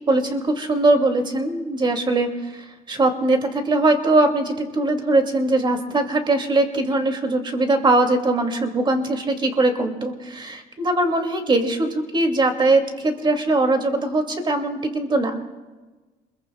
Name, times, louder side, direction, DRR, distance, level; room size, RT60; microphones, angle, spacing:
voice 1, 0.0-15.4, right 2 dB, 30° right, 5 dB, 2.4 m, -21 dB
27.5 x 22.0 x 2.3 m, 1.3 s
cardioid pair, 110°, 17 cm